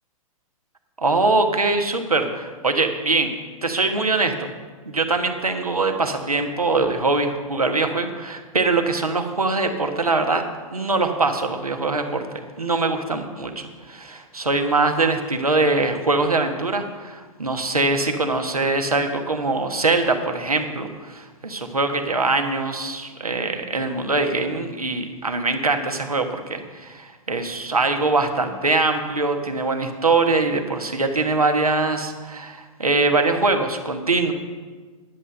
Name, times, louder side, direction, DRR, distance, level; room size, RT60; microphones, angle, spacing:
voice 1, 1.0-3.3 3.6-4.5 4.9-10.4 10.7-12.2 12.6-34.3, right 3 dB, 90° right, 5 dB, 1.3 m, -22 dB
11.0 x 7.9 x 6.6 m, 1.4 s
figure-of-eight pair, 110°, 18 cm